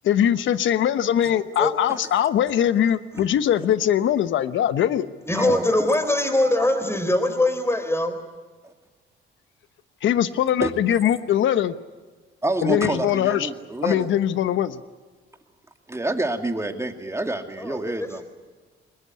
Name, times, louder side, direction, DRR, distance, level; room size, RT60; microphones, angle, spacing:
voice 1, 0.0-5.1 10.0-11.7 12.6-13.5 13.8-14.8, left 10 dB, 75° left, 13 dB, 1.1 m, -21 dB
voice 2, 1.3-1.7 5.3-8.2 17.6-18.1, left 1 dB, 15° left, 8 dB, 4.3 m, -22 dB
voice 3, 5.3-5.6 8.6-8.7 10.6-10.7 12.4-14.1 15.9-18.2, right 2 dB, 15° right, 5 dB, 2.5 m, -27 dB
22.5 x 20.5 x 9.8 m, 1.4 s
cardioid pair, 90°, 20 cm